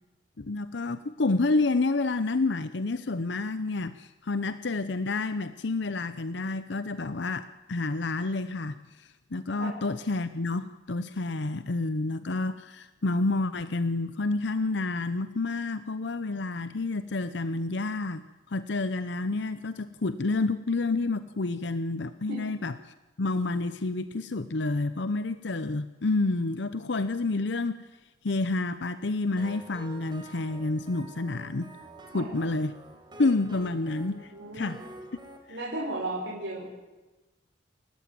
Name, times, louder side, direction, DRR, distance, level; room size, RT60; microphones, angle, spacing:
voice 1, 0.4-22.7 23.2-27.8 28.2-31.7 32.1-32.7 33.2-34.8, left 3 dB, 65° left, 12 dB, 0.8 m, -29 dB
sound 1, 29.4-35.4, right 2 dB, 25° right, 4.3 m, -48 dB
voice 2, 34.3-34.8 35.5-36.7, right 2 dB, 85° right, -4 dB, 6.0 m, -35 dB
29.5 x 14.5 x 9.3 m, 1.2 s
head